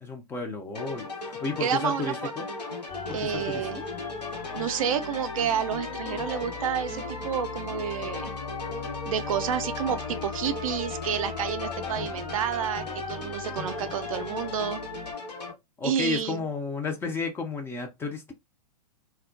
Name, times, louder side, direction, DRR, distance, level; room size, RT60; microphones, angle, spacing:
voice 1, 0.0-2.5 3.1-3.8 15.8-18.3, left 4 dB, 10° left, 0.4 m, -32 dB
sound 1, 0.7-15.5, left 3 dB, 90° left, 1.0 m, -37 dB
voice 2, 1.6-2.3 3.1-3.8 4.5-8.3 9.0-14.8 15.8-16.5, right 8 dB, 55° right, 0.4 m, -30 dB
sound 2, 2.9-15.1, left 4 dB, 55° left, 0.9 m, -39 dB
2.4 x 2.2 x 2.5 m
figure-of-eight pair, 115°, 20 cm